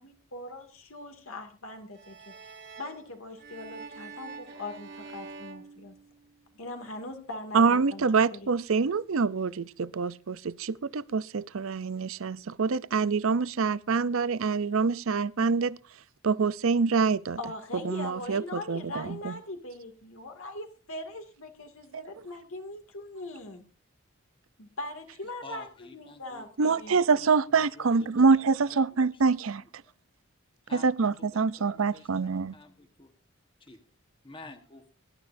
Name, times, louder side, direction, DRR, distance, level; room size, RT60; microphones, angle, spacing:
voice 1, 0.0-2.5 2.8-6.0 6.5-8.1 8.3-8.5 17.4-23.6 24.6-25.7 25.9-27.0, left 2 dB, 75° left, 2.3 m, -41 dB
sound 1, 1.9-6.6, right 4 dB, 50° right, 1.5 m, -46 dB
voice 2, 7.5-15.8 16.2-17.4 17.8-19.4 21.9-22.0 26.6-29.6 30.7-32.5, right 4 dB, 70° right, 0.6 m, -26 dB
voice 3, 25.4-29.9 30.6-33.1 33.6-33.8 34.2-34.9, left 2 dB, 25° left, 1.4 m, -51 dB
23.0 x 11.5 x 2.7 m
head